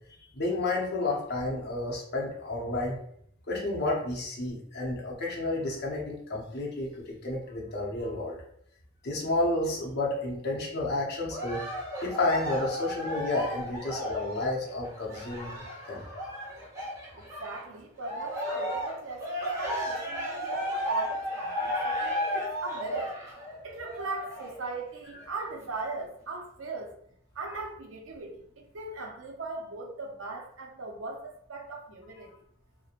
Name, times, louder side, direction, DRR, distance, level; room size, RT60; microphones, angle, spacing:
voice 1, 0.3-3.0 3.5-8.4 9.0-11.6 12.0-16.0, left 2 dB, 55° left, -2 dB, 0.7 m, -31 dB
Cheering, 11.3-17.6 18.0-24.6 25.2-25.3, equal, 15° right, 0.8 m, -34 dB
voice 2, 17.2-23.1 23.6-26.9 27.3-32.3, right 3 dB, 75° right, 1 dB, 0.6 m, -39 dB
2.9 x 2.1 x 2.4 m, 0.68 s
head